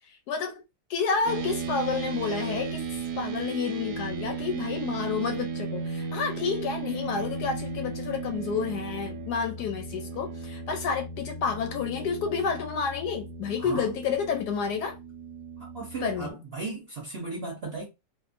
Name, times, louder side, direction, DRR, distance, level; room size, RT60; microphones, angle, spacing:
voice 1, 0.1-0.6 0.9-15.0 16.0-16.4, left 6 dB, 75° left, 1.0 m, -30 dB
sound 1, 1.3-16.3, right 4 dB, 75° right, 1.0 m, -36 dB
voice 2, 13.6-13.9 15.6-17.9, right 3 dB, 50° right, 0.7 m, -36 dB
2.8 x 2.4 x 2.4 m
omnidirectional pair, 1.9 m